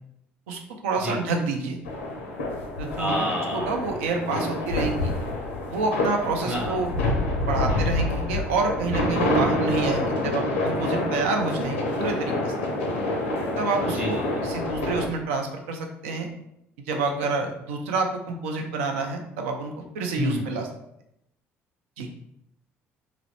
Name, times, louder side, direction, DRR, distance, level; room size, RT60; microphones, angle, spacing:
voice 1, 0.5-1.8 2.8-3.2 3.5-5.1 5.7-6.9 7.4-12.5 13.6-16.3 16.9-20.7 22.0-22.1, right 3 dB, 75° right, 3 dB, 0.4 m, -28 dB
sound 1, 1.9-15.1, left 1 dB, 80° left, 0.5 m, -27 dB
voice 2, 3.0-3.7 6.4-6.8 13.9-14.4 20.2-20.5, equal, 25° right, -2 dB, 1.2 m, -29 dB
2.9 x 2.4 x 3.1 m, 0.79 s
hypercardioid pair, 55°, 7 cm